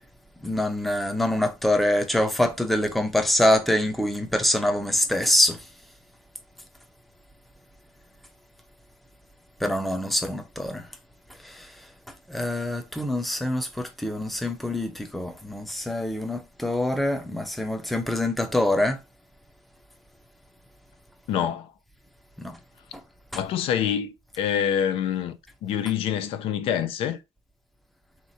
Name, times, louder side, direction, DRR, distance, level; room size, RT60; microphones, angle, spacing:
voice 1, 0.4-5.7 9.6-10.9 11.4-19.0 22.4-22.6 22.9-23.0, left 1 dB, ahead, 0.6 m, -25 dB
voice 2, 21.3-21.7 23.3-27.2, left 9 dB, 70° left, 0.5 m, -26 dB
3.5 x 2.9 x 4.1 m
cardioid pair, 150°, 10 cm